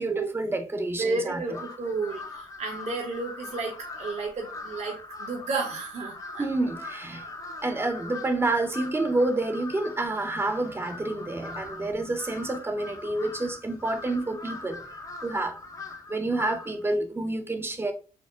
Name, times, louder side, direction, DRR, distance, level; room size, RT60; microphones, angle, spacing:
voice 1, 0.0-1.6 6.4-7.3 7.6-14.8 15.2-15.5 16.1-17.9, right 2 dB, 15° right, 0.6 m, -28 dB
voice 2, 1.0-6.5 7.1-7.2, right 3 dB, 55° right, 1.1 m, -32 dB
Crow, 1.5-16.8, left 3 dB, 25° left, 0.6 m, -41 dB
4.3 x 2.1 x 3.7 m
cardioid pair, 120°, 13 cm